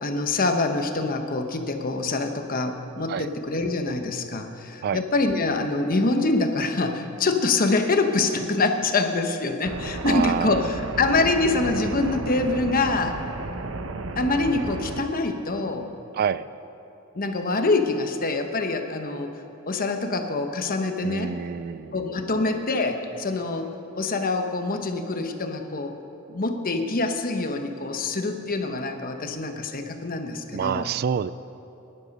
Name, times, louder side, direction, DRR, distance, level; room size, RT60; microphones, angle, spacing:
voice 1, 0.0-13.2 14.2-15.9 17.1-19.3 19.7-21.4 21.9-25.9 26.3-30.9, left 3 dB, 45° left, 5 dB, 1.0 m, -25 dB
sound 1, 9.6-15.0, right 2 dB, 70° right, 0.8 m, -33 dB
voice 2, 10.1-10.7 16.2-16.5 21.0-22.0 30.5-31.3, right 7 dB, 50° right, 17 dB, 0.3 m, -27 dB
18.5 x 11.0 x 5.3 m, 2.9 s
head